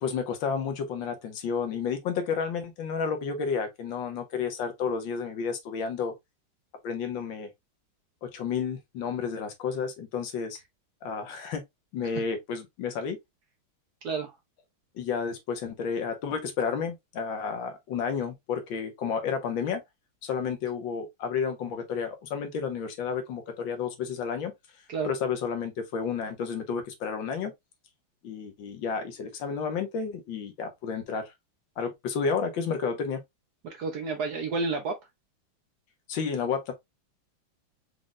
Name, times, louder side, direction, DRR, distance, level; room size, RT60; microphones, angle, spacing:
voice 1, 0.0-6.1 6.8-7.5 8.2-10.6 11.0-11.6 11.9-13.2 14.9-19.8 20.2-24.5 25.0-27.5 28.2-31.3 31.8-33.2 36.1-36.7, left 6 dB, 70° left, 1.6 m, -31 dB
voice 2, 14.0-14.4 24.9-25.1 33.6-35.0, right 4 dB, 65° right, 1.0 m, -30 dB
5.1 x 2.3 x 3.9 m
omnidirectional pair, 2.3 m